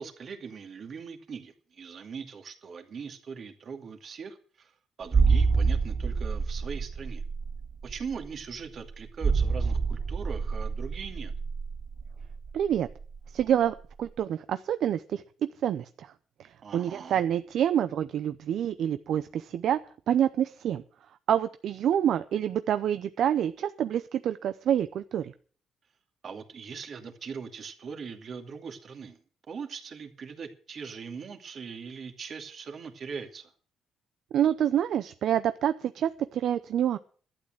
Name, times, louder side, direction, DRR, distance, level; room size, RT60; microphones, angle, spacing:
voice 1, 0.0-7.2 7.8-11.3 16.6-17.2 26.2-29.2 29.5-33.5, right 6 dB, 55° right, 6 dB, 2.3 m, -41 dB
sound 1, 5.1-13.5 13.8-13.9, right 5 dB, 30° right, 0.7 m, -28 dB
voice 2, 12.5-12.9 13.3-15.2 15.6-16.1 16.7-19.8 20.1-20.8 21.3-25.3 34.3-37.0, right 10 dB, 70° right, 12 dB, 0.6 m, -27 dB
12.0 x 8.8 x 7.6 m, 0.43 s
cardioid pair, 90°, 0 cm